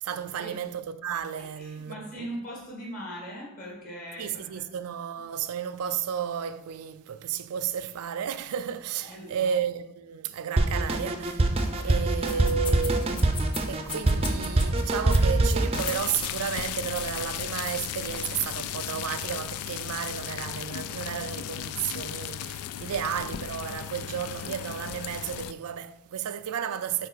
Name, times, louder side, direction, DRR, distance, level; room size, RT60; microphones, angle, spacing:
voice 1, 0.0-2.3 4.2-13.3 13.7-27.1, right 8 dB, 80° right, 0.4 m, -33 dB
voice 2, 1.6-4.6 9.0-9.5 11.8-12.6, equal, 40° left, 2.1 m, -40 dB
Drum kit, 10.6-15.9, right 2 dB, 25° right, 0.5 m, -24 dB
sound 1, 12.2-18.4, left 4 dB, 20° left, 0.6 m, -41 dB
sound 2, 15.7-25.5, left 11 dB, 80° left, 0.3 m, -35 dB
6.7 x 4.3 x 4.7 m
head